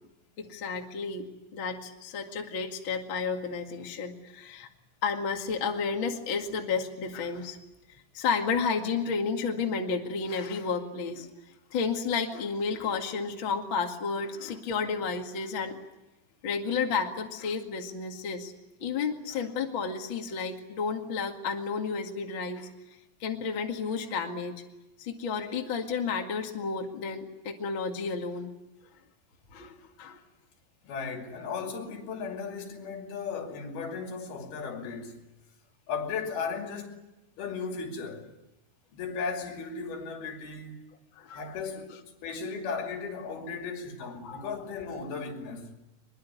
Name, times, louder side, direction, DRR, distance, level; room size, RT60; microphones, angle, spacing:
voice 1, 0.4-4.7 5.0-7.6 8.1-11.3 11.7-15.8 16.4-18.5 18.8-22.7 23.2-24.5 25.0-28.5 29.5-30.2 41.2-41.5 44.0-44.5, left 5 dB, 40° left, 2.1 m, -32 dB
voice 2, 30.8-35.2 35.9-37.0 37.4-38.3 38.9-40.8 41.3-41.9 42.2-45.7, left 5 dB, 65° left, 4.4 m, -36 dB
23.0 x 22.5 x 9.5 m
omnidirectional pair, 4.9 m